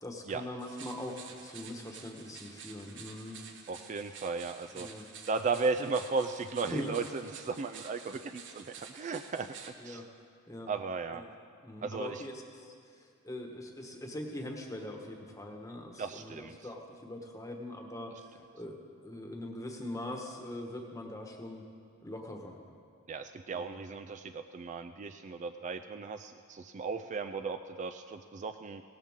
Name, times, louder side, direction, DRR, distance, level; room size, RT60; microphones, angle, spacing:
voice 1, 0.0-3.4 4.7-5.1 6.7-7.0 9.8-10.0 10.5-10.7 11.1-11.3 11.6-12.7 13.0-18.1 18.5-21.6 22.0-22.6 23.5-23.8, left 1 dB, 15° left, 2 dB, 1.2 m, -42 dB
sound 1, 0.6-9.7, right 6 dB, 55° right, 1.1 m, -50 dB
voice 2, 3.7-4.9 5.3-9.5 9.8-10.0 10.7-11.2 11.8-12.2 16.0-16.6 23.1-28.8, right 4 dB, 35° right, 8 dB, 0.3 m, -35 dB
17.0 x 13.5 x 3.6 m, 2.3 s
head